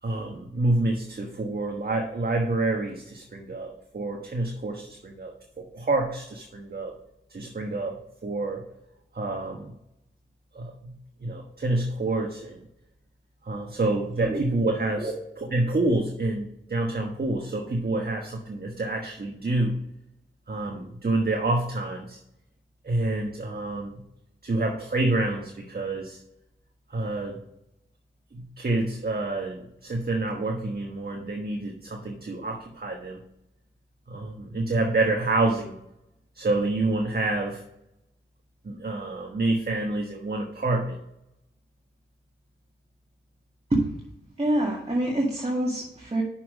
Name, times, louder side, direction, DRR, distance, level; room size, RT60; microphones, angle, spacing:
voice 1, 0.0-6.9 7.3-8.6 9.1-9.7 10.5-10.9 11.2-12.7 13.4-15.1 15.4-19.8 20.5-22.2 22.8-24.0 24.4-26.2 26.9-27.4 28.3-33.2 34.1-35.8 36.3-37.6 38.6-41.0, right 2 dB, 50° right, 2 dB, 1.3 m, -28 dB
voice 2, 44.4-46.2, right 1 dB, 30° right, -2 dB, 2.0 m, -26 dB
6.2 x 5.8 x 6.2 m, 0.82 s
cardioid pair, 40°, 20 cm